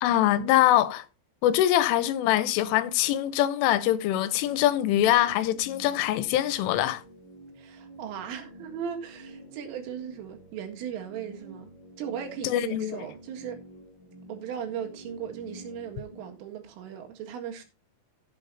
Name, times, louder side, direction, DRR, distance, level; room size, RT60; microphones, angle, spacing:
voice 1, 0.0-1.0 1.4-7.0 12.4-13.0, left 13 dB, 85° left, 3.4 m, -23 dB
sound 1, 3.9-16.3, right 1 dB, 25° left, 6.2 m, -49 dB
voice 2, 7.6-11.7 12.0-13.6 14.3-17.6, right 8 dB, 85° right, 4.4 m, -37 dB
16.5 x 8.2 x 2.7 m
omnidirectional pair, 5.7 m